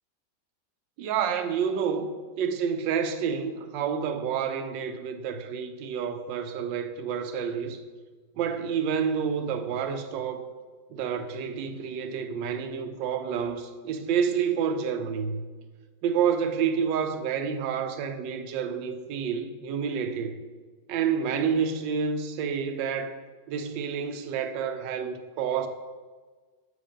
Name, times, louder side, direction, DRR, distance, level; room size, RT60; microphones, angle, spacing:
voice 1, 1.0-2.1 2.4-7.8 8.4-10.4 10.9-15.4 16.0-20.3 20.9-23.2 23.5-25.7, right 7 dB, 80° right, 1.3 m, -29 dB
7.9 x 4.9 x 5.0 m
omnidirectional pair, 2.0 m